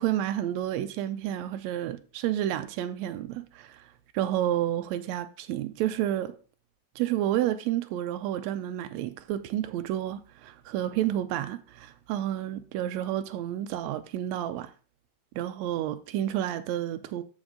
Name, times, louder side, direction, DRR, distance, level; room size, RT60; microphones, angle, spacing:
voice 1, 0.0-6.3 6.9-14.7 15.3-17.2, right 12 dB, 90° right, 1.5 m, -30 dB
13.5 x 5.4 x 3.7 m
omnidirectional pair, 3.8 m